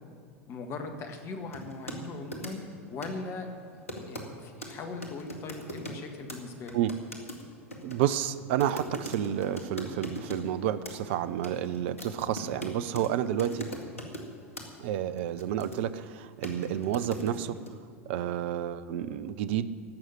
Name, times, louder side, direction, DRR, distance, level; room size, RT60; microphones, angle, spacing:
voice 1, 0.5-2.6 2.9-3.5 4.0-6.8, left 3 dB, 40° left, 5 dB, 1.9 m, -39 dB
sound 1, 1.5-2.0 2.3-2.7 3.0-3.2 3.9-4.3 4.6-4.7 5.0-6.0 6.3-6.4 6.7-10.4 10.8-11.1 11.4-13.1 13.4-14.3 14.6-14.7 15.2-16.0 16.4-17.7, equal, 80° left, 1.9 m, -40 dB
voice 2, 7.8-13.7 14.8-17.6 18.1-19.7, right 11 dB, 55° right, 13 dB, 0.6 m, -30 dB
16.5 x 6.4 x 10.0 m, 2.2 s
figure-of-eight pair, 80°, 7 cm